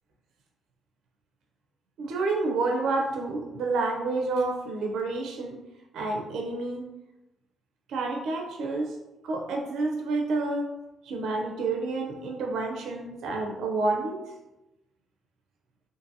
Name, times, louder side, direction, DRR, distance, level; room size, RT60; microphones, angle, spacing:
voice 1, 2.0-5.6 5.9-6.9 7.9-9.0 9.2-10.7 11.0-14.2, right 3 dB, 75° right, 1 dB, 0.4 m, -29 dB
2.6 x 2.5 x 2.5 m, 0.98 s
cardioid pair, 90°, 0 cm